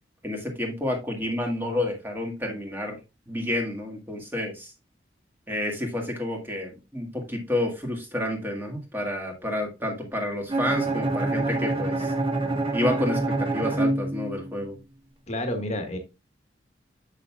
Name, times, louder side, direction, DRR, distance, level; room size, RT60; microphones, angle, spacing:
voice 1, 0.2-3.0 3.3-4.7 5.5-12.1 12.7-14.8, left 1 dB, 10° right, 1 dB, 1.8 m, -29 dB
Bowed string instrument, 10.5-14.6, right 2 dB, 30° right, 1.3 m, -26 dB
voice 2, 15.3-16.0, left 1 dB, 40° left, 6 dB, 1.4 m, -29 dB
7.4 x 6.5 x 2.3 m, 0.26 s
head